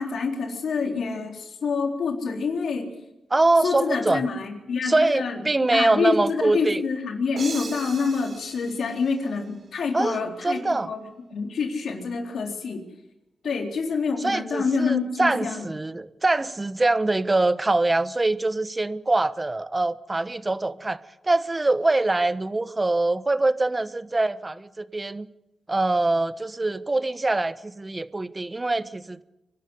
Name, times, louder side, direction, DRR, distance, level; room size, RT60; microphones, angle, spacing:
voice 1, 0.0-2.9 3.6-5.4 5.7-11.0 11.3-12.8 13.4-15.7, left 5 dB, 75° left, 3.9 m, -27 dB
voice 2, 3.3-4.2 4.8-6.8 9.9-10.2 10.4-10.9 14.2-21.0 21.2-25.3 25.7-29.2, right 2 dB, 25° right, 1.1 m, -24 dB
sound 1, 7.4-10.0, right 4 dB, 65° right, 3.4 m, -39 dB
25.0 x 12.0 x 9.8 m
cardioid pair, 60°, 0 cm